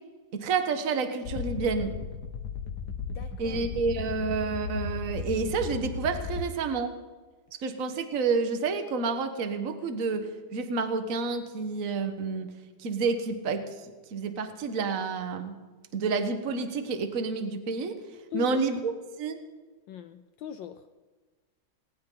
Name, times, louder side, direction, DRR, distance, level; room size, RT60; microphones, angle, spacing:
voice 1, 0.3-1.9 3.4-7.0 7.6-12.5 12.8-13.8 14.1-15.5 15.9-18.0 18.3-18.9 19.2-19.4, right 4 dB, 45° right, 8 dB, 1.5 m, -29 dB
sound 1, 1.3-6.4, left 5 dB, 55° left, 1.7 m, -35 dB
voice 2, 3.1-3.6 18.3-18.6 19.9-20.8, left 10 dB, 70° left, 9 dB, 1.3 m, -40 dB
20.0 x 18.5 x 3.9 m, 1.3 s
omnidirectional pair, 2.2 m